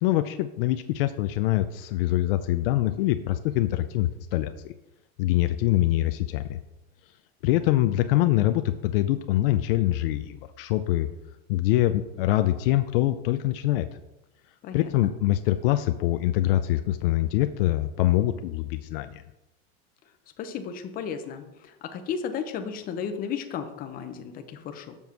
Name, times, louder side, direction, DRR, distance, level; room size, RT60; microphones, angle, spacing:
voice 1, 0.0-4.7 5.2-6.6 7.4-11.1 11.5-13.9 14.7-19.2, left 14 dB, 60° left, 9 dB, 0.6 m, -24 dB
voice 2, 14.6-15.1 20.4-24.9, left 7 dB, 25° left, 7 dB, 0.8 m, -34 dB
7.2 x 6.2 x 5.8 m, 0.95 s
supercardioid pair, 160°, 32 cm